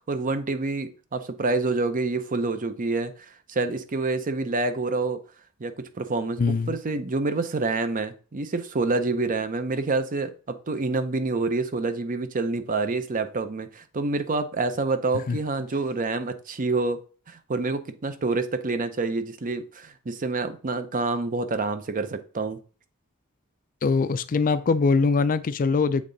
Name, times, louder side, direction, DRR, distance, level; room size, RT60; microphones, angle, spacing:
voice 1, 0.1-5.2 5.6-17.0 17.3-22.6, right 3 dB, 40° right, 0.6 m, -27 dB
voice 2, 6.4-6.8 15.3-15.4 23.8-26.0, left 4 dB, 40° left, 0.4 m, -22 dB
7.4 x 3.7 x 3.9 m
head